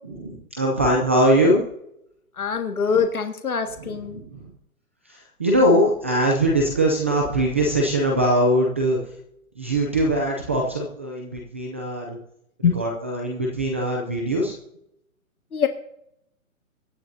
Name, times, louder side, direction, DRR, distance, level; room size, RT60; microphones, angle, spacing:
voice 1, 0.0-1.6 3.8-4.5 5.1-9.0 9.6-12.2 12.6-14.5, right 1 dB, 10° right, 0 dB, 0.5 m, -22 dB
voice 2, 2.4-4.2 12.6-12.7 15.5-15.7, left 6 dB, 85° left, 6 dB, 1.9 m, -23 dB
23.0 x 10.0 x 2.7 m, 0.77 s
hypercardioid pair, 155°, 42 cm